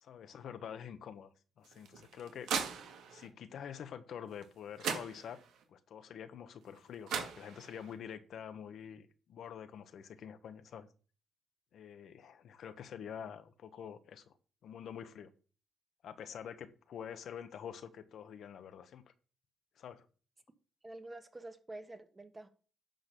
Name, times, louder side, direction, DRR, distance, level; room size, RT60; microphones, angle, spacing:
voice 1, 0.0-2.5 2.9-5.4 5.7-10.9 11.7-14.4 14.6-15.3 16.0-19.0 19.8-20.0, left 8 dB, 65° left, 1.0 m, -47 dB
sound 1, 1.6-3.3 4.4-4.5 4.8-5.6 6.8-6.9 7.1-7.9, right 7 dB, 80° right, 2.1 m, -39 dB
voice 2, 20.8-22.5, right 2 dB, 20° right, 1.4 m, -48 dB
10.5 x 4.0 x 6.7 m
cardioid pair, 90°, 0 cm